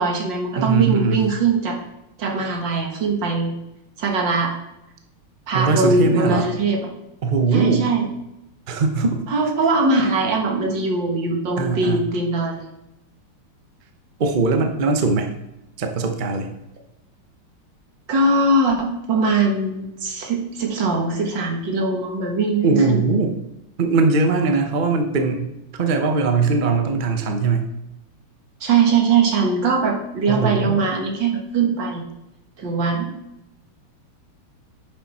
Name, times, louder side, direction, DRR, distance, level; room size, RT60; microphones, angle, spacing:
voice 1, 0.0-1.8 2.2-3.5 4.0-4.5 5.5-6.8 7.5-8.1 9.3-12.7 18.1-23.0 28.6-32.0 32.6-33.2, right 3 dB, 60° right, 1 dB, 2.1 m, -21 dB
voice 2, 0.6-1.2 5.5-6.5 7.2-7.9 8.7-9.2 11.6-12.1 14.2-15.3 15.8-16.5 22.6-23.3 23.8-25.5 25.7-27.7 30.3-30.8, right 4 dB, 75° right, 5 dB, 0.4 m, -20 dB
9.6 x 7.0 x 4.2 m, 0.88 s
omnidirectional pair, 2.4 m